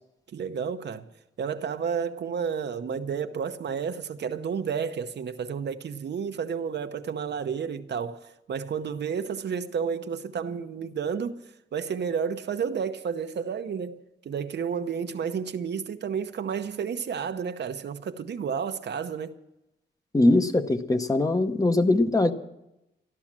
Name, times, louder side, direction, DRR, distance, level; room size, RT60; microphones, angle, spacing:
voice 1, 0.3-1.1 1.4-11.4 11.7-19.4, right 6 dB, 65° right, 0.8 m, -31 dB
voice 2, 20.1-22.3, left 2 dB, 20° left, 0.8 m, -21 dB
13.5 x 12.0 x 7.4 m
wide cardioid pair, 160°, 19 cm